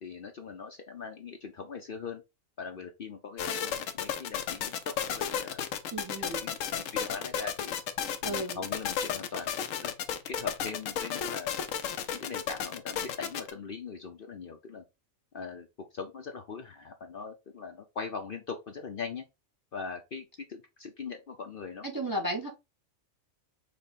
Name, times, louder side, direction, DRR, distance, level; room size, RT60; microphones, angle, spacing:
voice 1, 0.0-2.2 2.6-5.6 6.2-7.8 8.2-9.5 9.8-9.9 10.3-11.5 12.1-14.8 15.3-15.7 15.9-19.2 19.7-21.8, left 5 dB, 55° left, 0.7 m, -41 dB
sound 1, 3.4-13.5, left 8 dB, 75° left, 1.0 m, -33 dB
voice 2, 5.9-6.4 8.2-8.6 21.8-22.5, right 1 dB, 25° right, 0.5 m, -33 dB
5.1 x 2.1 x 4.0 m
omnidirectional pair, 1.4 m